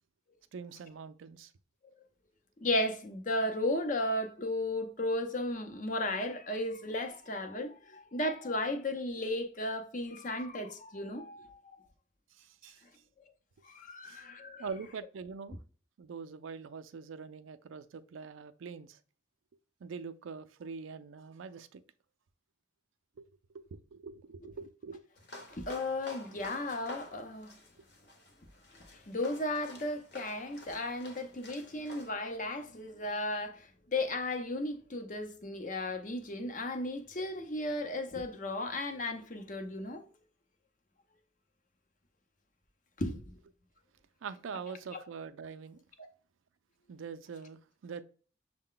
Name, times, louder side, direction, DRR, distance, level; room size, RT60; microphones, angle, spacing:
voice 1, 0.5-1.5 12.3-12.8 14.0-14.3 14.6-15.6 16.0-19.0 19.8-21.8 23.2-23.3 23.5-25.1 27.8-27.9 44.2-45.8 46.9-48.0, right 5 dB, 90° right, 0.4 m, -44 dB
voice 2, 2.6-11.8 13.6-14.7 25.5-27.5 29.1-40.0 43.0-43.3, left 1 dB, 40° left, 0.6 m, -35 dB
sound 1, 25.2-32.1, left 1 dB, 60° left, 0.9 m, -50 dB
6.4 x 2.2 x 3.7 m
head